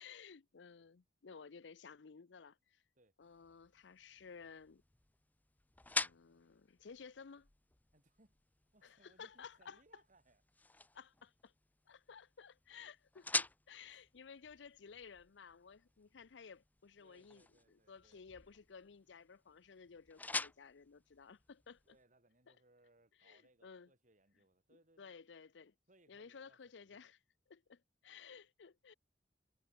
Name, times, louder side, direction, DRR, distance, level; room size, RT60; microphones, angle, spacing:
voice 1, 0.0-2.8 3.2-4.8 6.0-7.5 8.8-9.8 10.9-11.5 11.9-22.0 22.5-22.6 23.2-23.9 25.0-25.7 26.1-27.2 27.5-28.9, left 6 dB, 75° left, 0.6 m, -56 dB
sound 1, 3.2-22.0, left 3 dB, 10° left, 0.5 m, -47 dB
voice 2, 7.9-8.3 8.6-10.6 13.9-14.0 17.0-18.2 21.8-25.1 25.9-27.1, right 2 dB, 45° right, 5.5 m, -71 dB
head